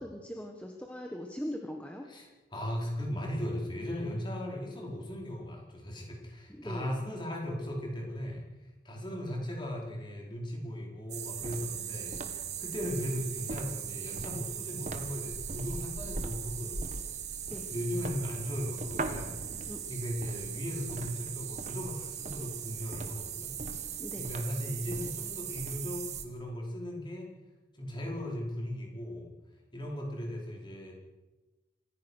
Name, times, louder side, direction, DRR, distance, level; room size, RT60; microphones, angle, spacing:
voice 1, 0.0-2.1 6.5-6.9 17.5-17.7 19.6-19.8 24.0-24.3, equal, 5° left, 2 dB, 1.5 m, -40 dB
voice 2, 2.1-8.5 8.8-17.1 17.7-19.4 19.9-23.5 24.2-27.3 27.8-29.3 29.7-30.9, equal, 25° left, -1 dB, 4.8 m, -37 dB
sound 1, 11.1-26.2, right 6 dB, 40° right, 1.7 m, -38 dB
27.0 x 15.5 x 6.4 m, 1.1 s
head